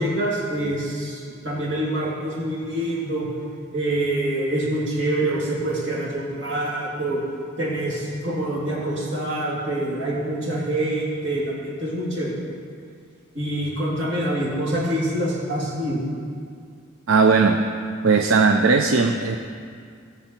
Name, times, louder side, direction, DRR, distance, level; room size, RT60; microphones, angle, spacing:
voice 1, 0.0-3.3 3.7-7.2 7.6-12.4 13.3-16.0, right 1 dB, 65° right, -5 dB, 3.1 m, -26 dB
voice 2, 17.1-17.6 18.0-19.4, right 4 dB, 85° right, 4 dB, 0.6 m, -17 dB
18.0 x 7.0 x 4.5 m, 2.2 s
head